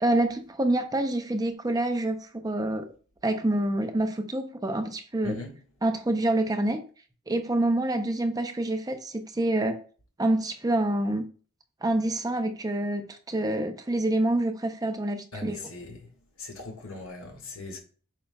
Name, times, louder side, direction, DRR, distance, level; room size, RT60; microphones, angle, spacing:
voice 1, 0.0-2.9 3.2-5.4 5.8-6.8 7.3-9.8 10.2-11.3 11.8-15.6, right 1 dB, 20° right, 0.6 m, -27 dB
voice 2, 5.2-5.6 15.3-16.1 16.4-17.8, left 3 dB, 70° left, 1.8 m, -40 dB
8.6 x 5.4 x 2.3 m
head